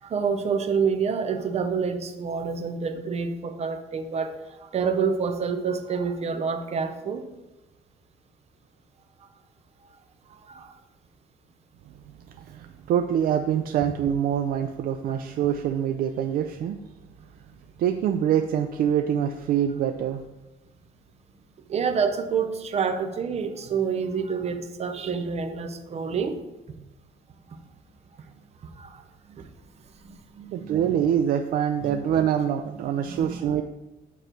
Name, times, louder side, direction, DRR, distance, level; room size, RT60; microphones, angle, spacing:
voice 1, 0.0-7.3 10.3-10.8 21.7-26.4 27.5-27.6 28.7-29.5 30.0-30.7 31.8-32.0 33.0-33.4, right 6 dB, 40° right, 7 dB, 0.7 m, -28 dB
voice 2, 12.3-16.8 17.8-20.3 30.5-33.6, right 9 dB, 60° right, 6 dB, 0.4 m, -25 dB
9.0 x 3.2 x 4.4 m, 1.0 s
cardioid pair, 110°, 17 cm